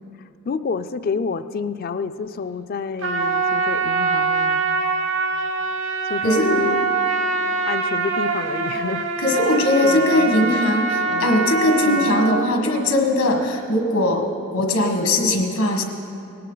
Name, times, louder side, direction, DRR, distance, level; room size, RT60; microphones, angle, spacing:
voice 1, 0.5-4.7 6.0-6.9 7.6-9.1 9.8-10.6 11.1-11.3 11.8-12.1 15.2-15.4, left 5 dB, 40° left, 12 dB, 0.3 m, -28 dB
Trumpet, 3.0-12.5, right 4 dB, 55° right, 0.8 m, -23 dB
voice 2, 6.2-6.6 9.2-14.3 14.5-15.8, left 1 dB, 85° left, 3 dB, 1.5 m, -20 dB
18.5 x 11.0 x 3.9 m, 2.7 s
head